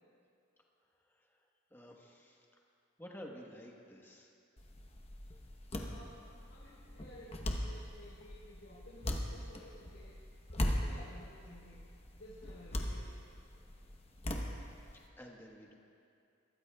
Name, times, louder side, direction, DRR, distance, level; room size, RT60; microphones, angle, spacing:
voice 1, 1.7-2.4 3.0-4.3 14.8-15.8, equal, 10° left, -1 dB, 1.2 m, -52 dB
sound 1, 4.6-15.1, left 1 dB, 30° left, 0.9 m, -40 dB
voice 2, 5.8-6.2 6.5-10.1 10.5-11.8 12.1-13.0, left 1 dB, 85° left, -9 dB, 3.6 m, -55 dB
22.5 x 13.5 x 2.3 m, 2.5 s
head